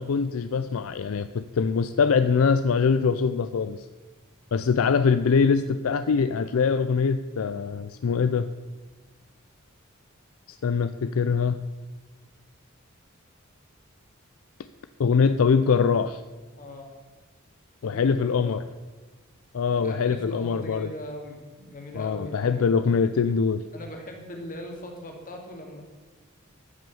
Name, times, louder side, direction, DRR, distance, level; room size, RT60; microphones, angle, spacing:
voice 1, 0.0-3.9 4.5-8.4 10.6-11.6 15.0-16.2 17.8-18.6 19.5-20.9 22.0-23.6, left 5 dB, 75° left, 11 dB, 0.4 m, -23 dB
voice 2, 16.6-16.9 17.8-18.6 19.7-23.1 23.7-25.8, left 1 dB, 40° left, 2 dB, 2.2 m, -40 dB
12.5 x 6.3 x 7.0 m, 1.3 s
head